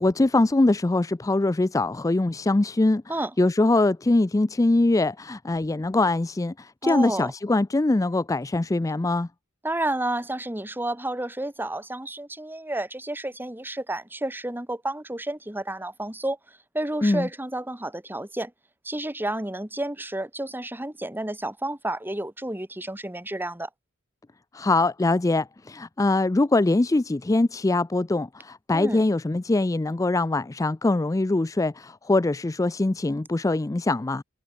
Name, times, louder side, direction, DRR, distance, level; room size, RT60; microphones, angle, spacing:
voice 1, 0.0-3.0 3.4-9.3 17.0-17.3 24.5-34.2, left 2 dB, 15° left, 0.4 m, -23 dB
voice 2, 6.8-7.3 9.6-16.4 16.7-18.5 18.8-23.7 28.7-29.0, right 1 dB, 10° right, 1.9 m, -31 dB
head